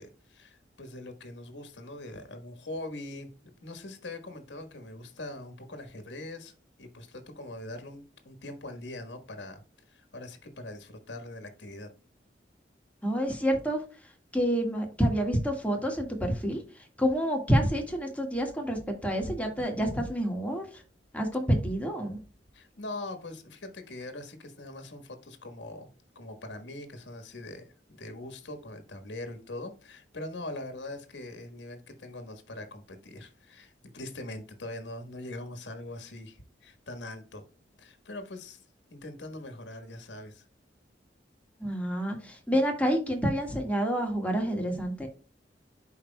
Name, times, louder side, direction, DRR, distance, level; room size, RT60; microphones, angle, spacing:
voice 1, 0.0-6.5 6.8-9.6 9.9-11.9 22.5-25.9 26.1-27.7 28.0-37.4 37.8-38.6 38.9-40.4, left 2 dB, 80° left, 7 dB, 1.4 m, -42 dB
voice 2, 13.0-20.8 21.1-22.2 41.6-45.1, equal, 10° left, 2 dB, 1.6 m, -28 dB
11.0 x 4.7 x 2.2 m, 0.35 s
head